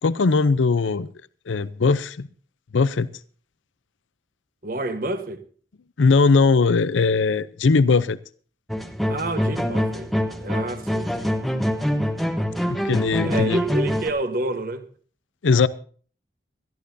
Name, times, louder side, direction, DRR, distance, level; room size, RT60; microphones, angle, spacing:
voice 1, 0.0-1.1 1.5-2.3 2.7-3.1 6.0-8.2 12.7-13.6 15.4-15.7, left 4 dB, 85° left, 0.6 m, -19 dB
voice 2, 4.6-5.4 9.1-10.1 10.4-11.1 13.2-14.9, right 2 dB, 45° right, 1.3 m, -28 dB
sound 1, 8.7-14.1, equal, ahead, 1.0 m, -25 dB
21.5 x 13.5 x 2.7 m
head